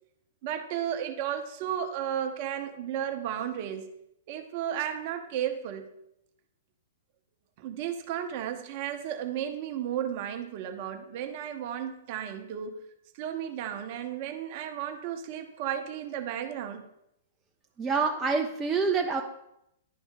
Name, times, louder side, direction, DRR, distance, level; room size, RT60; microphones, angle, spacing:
voice 1, 0.4-3.9 4.3-5.9 7.6-12.8 13.2-16.8, right 10 dB, 45° right, 7 dB, 0.8 m, -34 dB
voice 2, 17.8-19.2, right 4 dB, 15° right, 2 dB, 0.5 m, -26 dB
10.0 x 3.5 x 4.9 m, 0.80 s
figure-of-eight pair, 105°, 0 cm